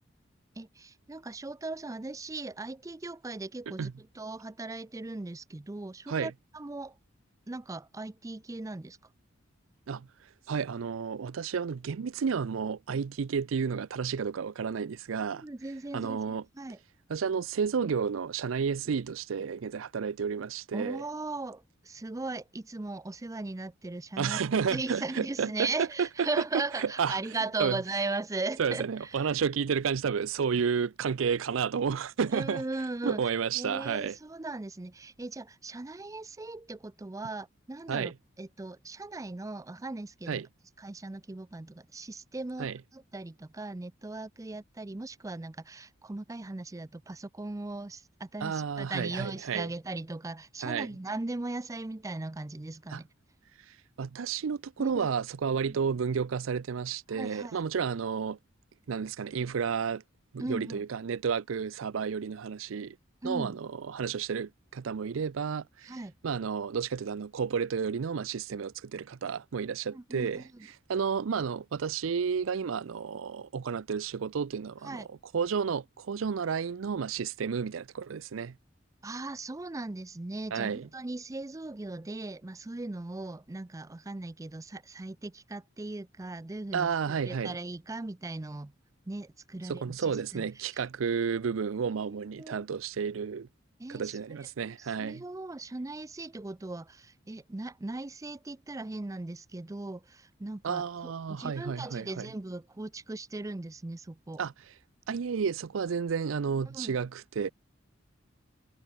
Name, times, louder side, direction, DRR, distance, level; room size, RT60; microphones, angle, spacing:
voice 1, 0.6-7.0 7.5-9.0 15.3-16.8 20.7-29.4 32.3-38.1 38.4-40.4 40.8-53.1 54.8-55.1 55.7-55.8 57.1-57.6 60.4-60.8 63.2-63.6 65.9-66.1 69.9-70.7 74.8-75.1 79.0-88.7 89.1-90.8 92.1-92.6 93.8-94.5 94.8-104.4 106.7-106.9, right 2 dB, 15° right, 0.5 m, -38 dB
voice 2, 10.5-15.4 15.9-16.4 17.1-21.0 24.2-26.3 26.8-27.2 27.6-27.8 28.6-32.6 33.0-34.2 37.9-38.1 40.3-40.5 42.6-42.8 48.4-49.7 50.6-50.9 52.9-53.0 54.0-58.4 58.9-60.0 60.3-63.0 63.2-66.0 66.2-70.4 70.9-78.5 80.5-80.9 86.7-87.6 89.7-93.5 93.9-95.2 100.6-102.3 104.4-104.5 105.1-107.5, right 6 dB, 80° right, 0.5 m, -31 dB
head